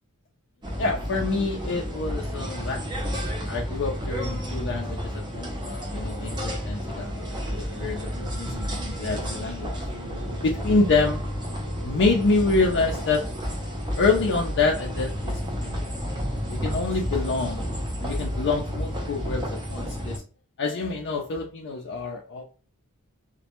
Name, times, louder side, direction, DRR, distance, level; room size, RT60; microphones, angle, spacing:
sound 1, 0.6-20.2, equal, 20° right, 0.5 m, -31 dB
voice 1, 0.8-7.3 7.6-8.5 9.0-9.7 10.4-11.2 11.8-13.2 14.0-15.9 16.5-17.7 18.0-20.2 20.6-22.4, left 3 dB, 55° left, 0.4 m, -27 dB
sound 2, 7.3-13.1, right 1 dB, 75° right, 0.6 m, -41 dB
2.1 x 2.0 x 2.8 m
head